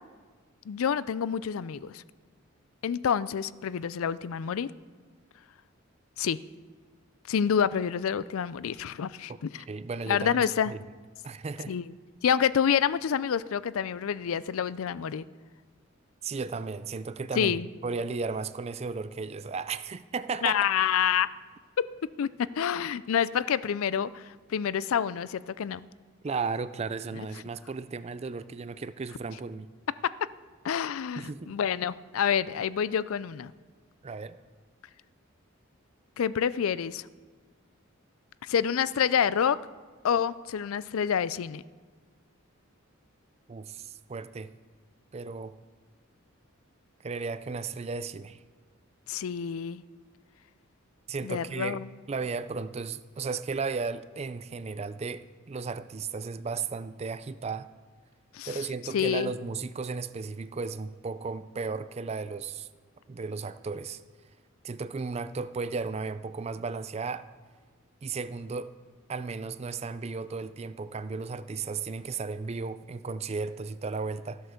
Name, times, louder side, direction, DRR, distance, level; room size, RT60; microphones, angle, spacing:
voice 1, 0.7-2.0 2.8-4.7 6.2-6.4 7.3-9.6 10.1-10.7 11.7-11.8 12.2-15.2 17.4-17.7 20.4-21.3 21.8-21.9 22.2-25.8 27.2-27.3 30.0-30.1 30.6-33.5 36.2-37.0 38.4-39.6 40.0-41.6 49.1-49.8 51.2-51.9 58.3-58.6 58.9-59.3, left 8 dB, 75° left, 18 dB, 0.4 m, -28 dB
voice 2, 9.7-10.8 11.2-11.7 16.2-17.6 17.8-20.7 26.2-29.7 31.2-31.6 34.0-34.4 43.5-44.5 45.1-45.5 47.0-48.4 51.1-51.8 52.1-57.7 58.5-62.7 63.1-64.0 64.6-67.2 68.0-68.7 69.1-74.4, right 4 dB, 30° right, 14 dB, 0.4 m, -35 dB
14.5 x 8.0 x 6.4 m, 1.5 s
head